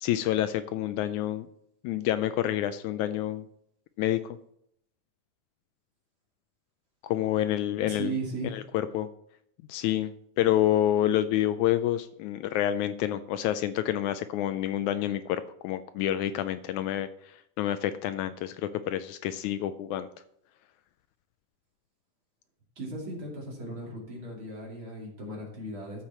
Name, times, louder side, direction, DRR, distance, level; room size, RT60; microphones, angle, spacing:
voice 1, 0.0-1.5 1.8-3.5 4.0-4.4 7.0-8.1 8.5-8.6 8.9-9.1 9.7-17.1 17.6-20.1, left 12 dB, 80° left, 11 dB, 1.9 m, -28 dB
voice 2, 7.9-8.6 22.8-26.0, right 2 dB, 40° right, -3 dB, 3.2 m, -37 dB
13.5 x 6.5 x 4.3 m, 0.71 s
omnidirectional pair, 3.6 m